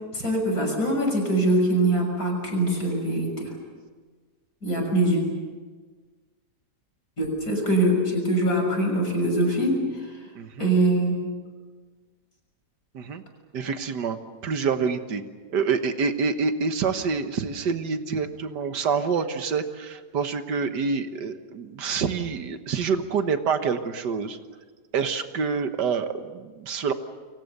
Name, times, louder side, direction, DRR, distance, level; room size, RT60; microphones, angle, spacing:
voice 1, 0.1-3.5 4.6-5.2 7.2-10.2 10.6-11.1, right 1 dB, 60° left, 2 dB, 6.7 m, -23 dB
voice 2, 10.4-10.7 12.9-13.2 13.5-14.2 14.4-15.2 15.5-24.4 24.9-26.9, right 5 dB, 90° right, 8 dB, 1.9 m, -27 dB
29.5 x 23.5 x 6.7 m, 1.5 s
omnidirectional pair, 1.8 m